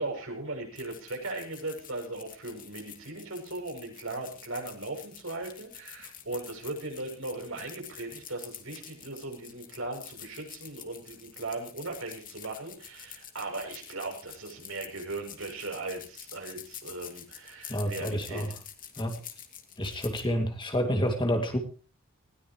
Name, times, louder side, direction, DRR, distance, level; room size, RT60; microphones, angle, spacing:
voice 1, 0.0-18.5, right 2 dB, 70° right, 2 dB, 7.7 m, -38 dB
sound 1, 0.7-20.3, left 9 dB, 40° left, 2.4 m, -47 dB
voice 2, 17.7-18.5 19.0-19.1 19.8-21.6, equal, 25° left, 4 dB, 2.5 m, -29 dB
20.0 x 17.0 x 3.2 m, 0.38 s
head